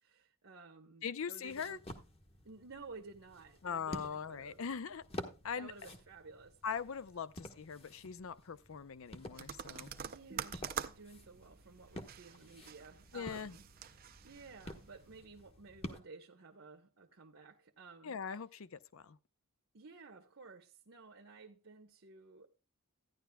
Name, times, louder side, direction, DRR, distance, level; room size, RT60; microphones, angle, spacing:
voice 1, 0.0-1.8 2.4-4.6 5.5-6.6 10.0-13.7 14.2-18.2 19.7-22.5, right 4 dB, 65° right, 1.0 m, -54 dB
voice 2, 1.0-1.8 3.6-5.1 5.4-5.7 6.6-10.0 13.1-13.6 18.0-19.2, left 6 dB, 70° left, 0.5 m, -41 dB
sound 1, 1.5-16.0, left 1 dB, 25° left, 1.1 m, -51 dB
sound 2, 9.3-15.2, right 8 dB, 45° right, 0.5 m, -47 dB
14.0 x 10.0 x 2.2 m
head